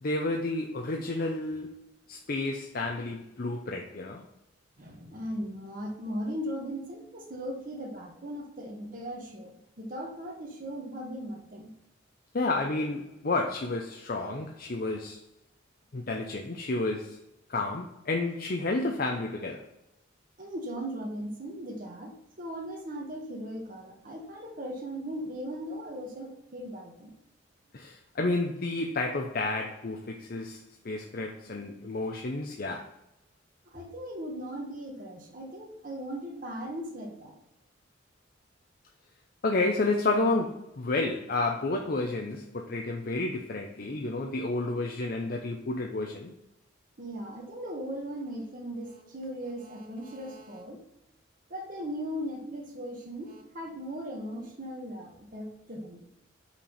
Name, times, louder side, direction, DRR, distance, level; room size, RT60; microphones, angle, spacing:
voice 1, 0.0-1.8 2.1-4.3 12.3-15.2 15.9-17.2 17.5-19.7 27.7-32.9 39.4-46.3, left 2 dB, 50° left, 0.6 m, -31 dB
voice 2, 4.8-11.7 20.4-27.1 33.7-37.3 47.0-50.8 51.5-56.0, equal, 45° right, 1.3 m, -38 dB
5.8 x 4.4 x 5.7 m
head